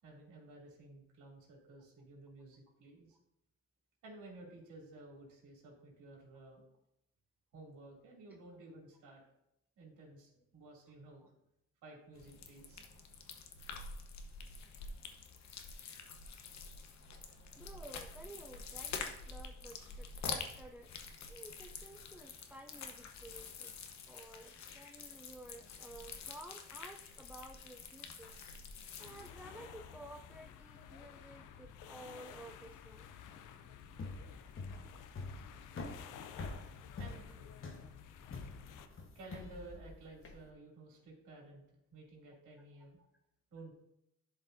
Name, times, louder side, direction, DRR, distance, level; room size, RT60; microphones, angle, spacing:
voice 1, 0.0-3.2 4.0-6.6 7.5-9.2 9.8-11.3 11.8-12.9 37.0-37.2 37.8-37.9 39.1-43.0 43.5-43.7, right 2 dB, 85° right, -3 dB, 2.9 m, -54 dB
sound 1, 12.1-29.3, left 5 dB, 65° left, 1.0 m, -47 dB
voice 2, 17.6-20.9 21.3-23.7 24.0-28.3 29.0-33.1 36.3-36.8, right 1 dB, 5° right, 3 dB, 0.4 m, -53 dB
sound 2, 29.0-38.9, left 8 dB, 90° left, 0.6 m, -53 dB
sound 3, 33.9-40.4, left 3 dB, 45° left, 1.2 m, -46 dB
11.5 x 5.1 x 2.7 m, 0.84 s
cardioid pair, 90°, 30 cm